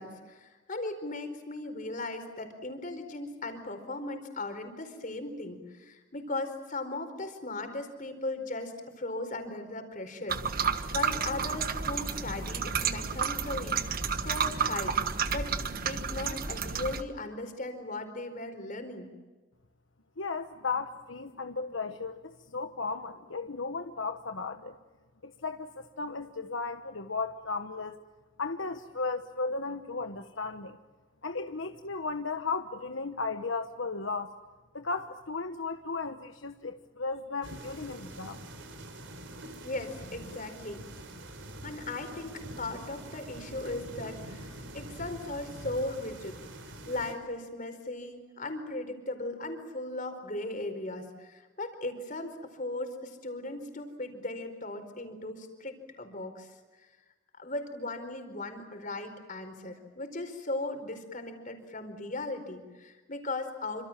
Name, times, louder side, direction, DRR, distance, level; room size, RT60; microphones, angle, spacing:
voice 1, 0.0-15.0 15.3-19.1 39.6-40.8 41.6-56.5 57.4-63.9, left 2 dB, 40° left, 7 dB, 4.6 m, -38 dB
sound 1, 10.3-17.0, right 6 dB, 45° right, 1.4 m, -31 dB
voice 2, 20.2-24.7 25.2-28.0 28.4-30.8 31.2-34.3 34.7-38.4, left 4 dB, 75° left, 7 dB, 1.2 m, -35 dB
sound 2, 37.4-47.1, right 1 dB, 65° right, 4.7 m, -45 dB
27.5 x 26.5 x 7.4 m, 1.3 s
head